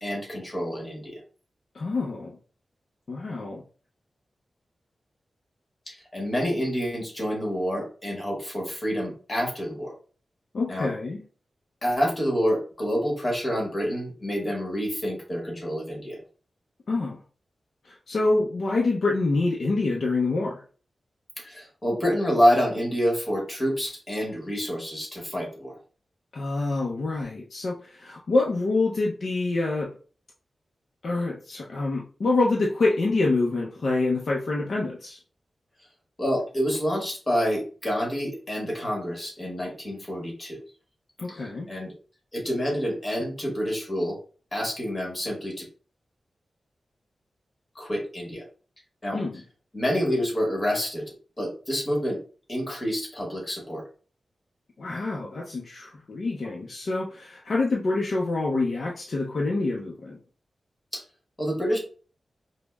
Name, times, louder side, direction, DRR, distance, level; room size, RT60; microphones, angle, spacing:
voice 1, 0.0-1.2 5.9-9.9 10.7-10.9 11.8-16.2 21.4-25.8 36.2-40.6 41.3-41.9 42.3-44.2 44.5-45.6 47.7-48.4 49.0-49.2 49.7-51.0 51.4-52.2 52.5-53.8 60.9-61.0 61.4-61.8, equal, 25° left, -1 dB, 1.1 m, -27 dB
voice 2, 1.7-2.4 3.1-3.6 10.5-11.2 16.9-17.2 17.8-20.6 26.3-29.9 31.0-35.2 41.2-41.7 49.1-49.4 54.8-60.2, left 3 dB, 55° left, -2 dB, 0.4 m, -26 dB
5.1 x 2.0 x 2.2 m, 0.40 s
wide cardioid pair, 170°, 0 cm